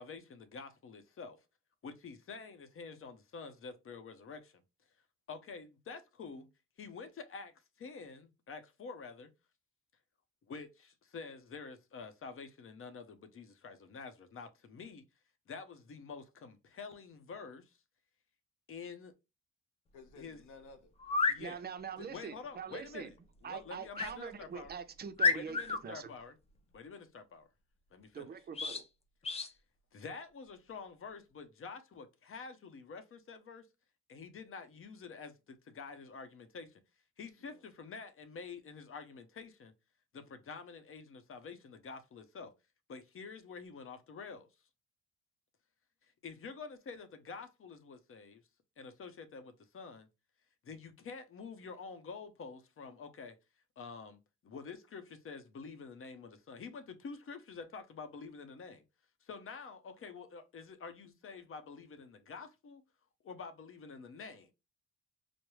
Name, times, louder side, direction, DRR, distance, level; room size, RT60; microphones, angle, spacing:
voice 1, 0.0-1.4 1.8-4.6 5.3-6.5 6.8-9.3 10.4-15.0 15.5-17.8 18.7-19.1 20.2-20.4 21.3-21.6 22.0-23.1 23.4-24.7 25.3-26.4 26.7-27.5 27.9-28.3 29.3-29.4 29.9-33.7 34.1-36.8 37.2-39.7 40.1-42.5 42.9-44.5 46.2-48.4 48.8-50.1 50.6-53.4 53.8-58.8 59.2-62.8 63.2-64.5, left 5 dB, 45° left, 0.8 m, -48 dB
voice 2, 19.9-20.9 37.4-37.6, left 3 dB, 90° left, 0.9 m, -55 dB
sound 1, 20.1-20.2 21.0-21.4 23.9-24.1 24.7-24.8 25.2-25.8 28.5-28.8 29.2-29.5, left 4 dB, 20° left, 0.4 m, -31 dB
voice 3, 21.4-23.1 23.4-26.1 28.1-28.8, right 7 dB, 35° right, 0.6 m, -44 dB
4.7 x 2.1 x 3.0 m
cardioid pair, 90°, 30 cm